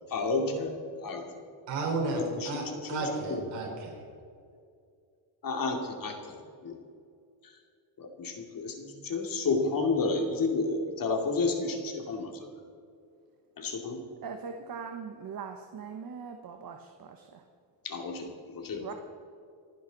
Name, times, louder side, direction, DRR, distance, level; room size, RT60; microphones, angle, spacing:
voice 1, 0.1-1.4 2.1-3.4 5.4-6.8 7.4-7.5 8.0-12.5 13.6-14.0 17.8-18.9, left 3 dB, 50° left, 3 dB, 2.5 m, -31 dB
voice 2, 1.7-4.0, right 2 dB, 85° right, -1 dB, 4.7 m, -32 dB
voice 3, 14.2-17.4 18.8-18.9, right 6 dB, 50° right, 5 dB, 1.3 m, -41 dB
27.5 x 10.0 x 4.1 m, 2.4 s
cardioid pair, 125°, 43 cm